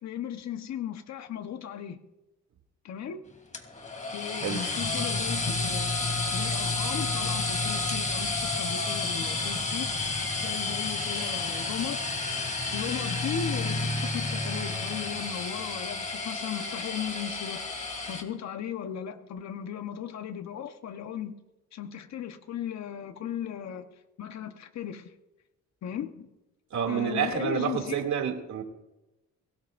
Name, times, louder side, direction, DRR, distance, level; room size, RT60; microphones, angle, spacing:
voice 1, 0.0-2.0 2.8-3.2 4.1-5.9 6.3-10.0 10.4-12.0 12.7-17.8 18.1-21.4 21.7-25.1 25.8-26.3 26.9-27.9, left 9 dB, 65° left, 7 dB, 1.2 m, -36 dB
sound 1, 3.5-18.2, left 3 dB, 25° left, 2.8 m, -30 dB
voice 2, 26.7-28.6, right 7 dB, 65° right, 3 dB, 2.8 m, -28 dB
23.0 x 18.0 x 2.7 m, 1.0 s
cardioid pair, 90°, 30 cm